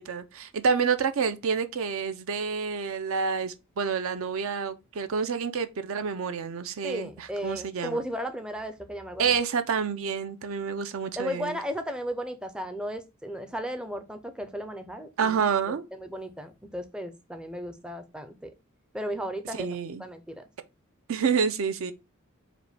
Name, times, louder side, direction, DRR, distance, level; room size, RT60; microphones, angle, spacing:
voice 1, 0.0-8.0 9.2-11.6 15.2-15.8 19.6-20.1 21.1-21.9, right 6 dB, 70° right, 0.5 m, -28 dB
voice 2, 6.8-9.3 11.2-18.5 18.9-19.7 20.0-20.5, equal, 5° right, 0.4 m, -35 dB
4.9 x 2.2 x 3.2 m
head